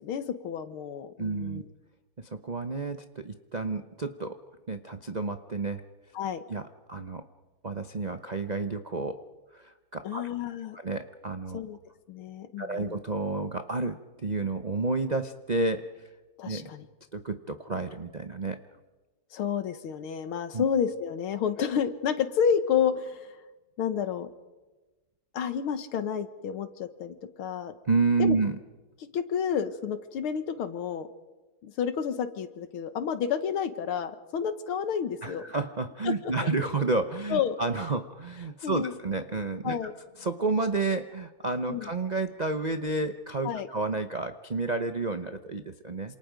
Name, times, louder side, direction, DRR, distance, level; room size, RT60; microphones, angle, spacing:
voice 1, 0.0-1.7 6.1-6.4 10.0-10.8 11.5-11.8 12.1-13.0 16.4-16.9 19.3-23.4 23.8-24.3 25.3-27.7 28.2-28.4 29.1-31.1 31.6-35.4 36.0-36.1 36.4-36.5 37.3-37.6 38.6-39.0 39.6-39.9 41.7-41.9 43.4-43.7, left 7 dB, 85° left, 10 dB, 2.1 m, -30 dB
voice 2, 1.2-1.6 2.2-4.4 4.7-5.8 6.5-7.2 7.6-9.2 9.5-10.2 10.7-11.6 12.6-16.0 16.4-16.7 17.1-18.6 20.5-20.6 27.9-28.6 35.2-39.8 40.2-46.1, right 3 dB, 75° right, 7 dB, 0.4 m, -30 dB
28.0 x 27.0 x 5.2 m, 1.2 s
omnidirectional pair, 2.3 m